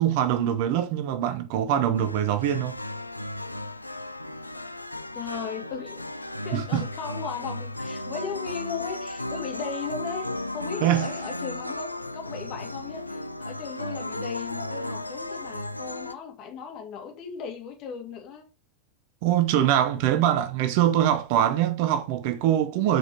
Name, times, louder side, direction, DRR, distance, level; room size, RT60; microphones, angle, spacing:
voice 1, 0.0-2.8 6.5-6.8 10.8-11.1 19.2-23.0, right 11 dB, 45° right, 1.0 m, -23 dB
sound 1, 2.0-16.1, left 1 dB, 85° left, 0.5 m, -35 dB
voice 2, 5.1-6.0 6.4-18.5, left 6 dB, 40° left, 2.6 m, -37 dB
7.8 x 5.2 x 4.7 m
figure-of-eight pair, 90°, 0 cm